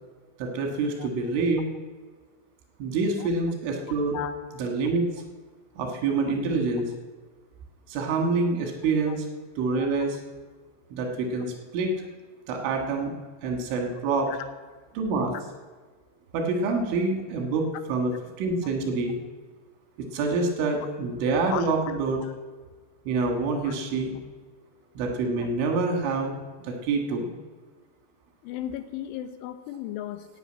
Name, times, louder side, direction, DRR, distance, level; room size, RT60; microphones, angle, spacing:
voice 1, 0.4-1.6 2.8-4.2 4.6-5.1 5.8-6.9 7.9-9.3 9.6-10.2 10.9-11.9 12.5-13.1 13.4-14.3 14.9-15.3 16.3-18.1 18.4-19.2 20.0-22.2 23.1-24.1 25.0-26.4 26.6-27.3, right 3 dB, 90° right, 2 dB, 4.1 m, -26 dB
voice 2, 28.4-30.3, left 11 dB, 90° left, 9 dB, 3.4 m, -35 dB
15.0 x 6.1 x 8.8 m, 1.4 s
omnidirectional pair, 5.4 m